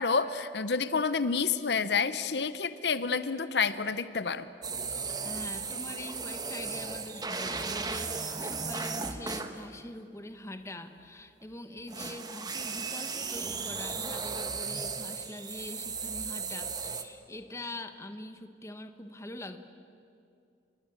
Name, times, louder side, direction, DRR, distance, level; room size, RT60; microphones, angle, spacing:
voice 1, 0.0-4.5, left 5 dB, 70° left, 13 dB, 0.8 m, -29 dB
sound 1, 4.6-9.5 11.9-17.0, right 4 dB, 20° right, 1.4 m, -36 dB
voice 2, 4.9-19.6, left 1 dB, 15° left, 7 dB, 1.3 m, -44 dB
29.5 x 22.0 x 9.0 m, 2.5 s
head